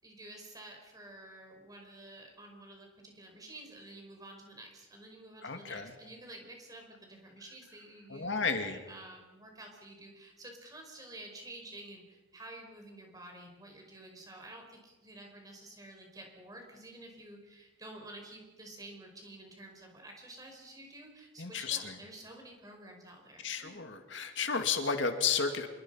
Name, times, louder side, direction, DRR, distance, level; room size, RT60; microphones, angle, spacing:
voice 1, 0.0-23.9, right 1 dB, 20° right, 2 dB, 5.0 m, -50 dB
voice 2, 5.4-5.9 8.1-8.8 21.4-22.0 23.4-25.7, left 5 dB, 75° left, 6 dB, 2.2 m, -32 dB
26.5 x 22.5 x 5.7 m, 1.2 s
head